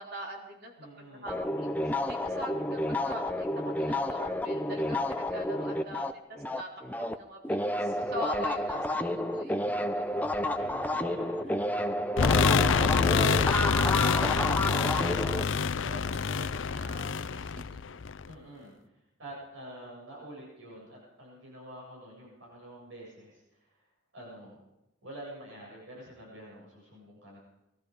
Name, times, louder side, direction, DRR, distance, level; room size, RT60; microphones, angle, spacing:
voice 1, 0.0-10.2 12.5-17.8, equal, 55° right, 1 dB, 3.7 m, -43 dB
voice 2, 0.8-1.4 8.7-9.4 10.6-12.7 18.3-18.7 19.2-23.7 24.1-24.6 25.0-27.4, right 1 dB, 75° right, -3 dB, 7.7 m, -47 dB
sound 1, 1.3-7.2 7.4-15.4, left 1 dB, 10° left, 0.7 m, -30 dB
sound 2, 10.0-16.3, equal, 15° right, 2.9 m, -55 dB
sound 3, 12.2-18.3, left 5 dB, 75° left, 0.6 m, -26 dB
22.0 x 13.0 x 5.0 m, 0.92 s
head